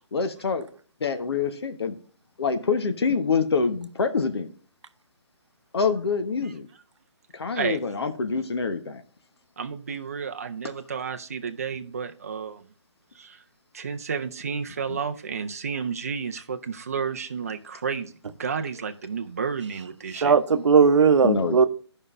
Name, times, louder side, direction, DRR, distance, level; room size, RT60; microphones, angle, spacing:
voice 1, 0.1-0.7 1.0-2.0 2.4-4.5 5.7-6.7 7.3-9.0 14.9-15.0 21.2-21.7, left 5 dB, 60° left, 1.0 m, -26 dB
voice 2, 9.6-12.6 13.2-13.4 13.7-18.1 18.4-20.3, right 6 dB, 30° right, 0.5 m, -31 dB
voice 3, 20.1-21.7, right 5 dB, 80° right, 0.7 m, -18 dB
14.0 x 5.4 x 2.5 m
hypercardioid pair, 175°, 15 cm